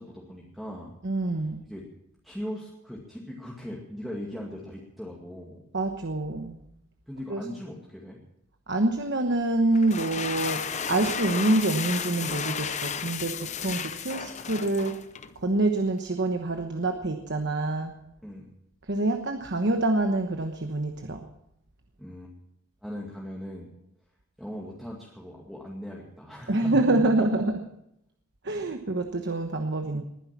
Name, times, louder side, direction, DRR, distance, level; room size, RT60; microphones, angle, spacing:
voice 1, 0.0-0.9 1.6-1.8 2.2-5.6 7.1-8.2 18.2-18.5 22.0-22.3 22.8-23.7 24.4-26.7 27.2-27.3, equal, ahead, -4 dB, 2.1 m, -39 dB
voice 2, 1.0-1.6 5.7-6.6 7.3-7.4 8.7-10.6 10.9-14.9 15.4-17.9 18.8-21.3 26.5-27.6 28.4-30.0, right 2 dB, 55° right, 5 dB, 1.1 m, -26 dB
sound 1, 9.7-15.3, left 7 dB, 35° left, 0.7 m, -33 dB
20.5 x 10.0 x 6.0 m, 0.80 s
head